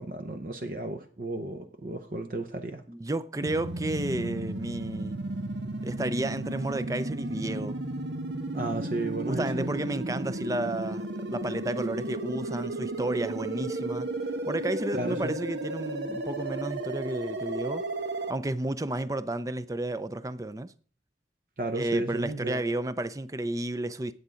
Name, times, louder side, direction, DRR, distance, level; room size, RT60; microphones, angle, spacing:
voice 1, 0.0-2.8 8.5-9.7 15.0-15.3 21.6-22.6, right 2 dB, 50° right, 0.8 m, -33 dB
voice 2, 2.9-5.2 5.8-7.8 9.3-14.1 14.5-17.8 18.3-20.7 21.7-24.1, right 1 dB, 20° right, 0.4 m, -32 dB
sound 1, 3.4-18.3, right 2 dB, 85° right, 1.1 m, -34 dB
9.9 x 8.0 x 5.1 m
head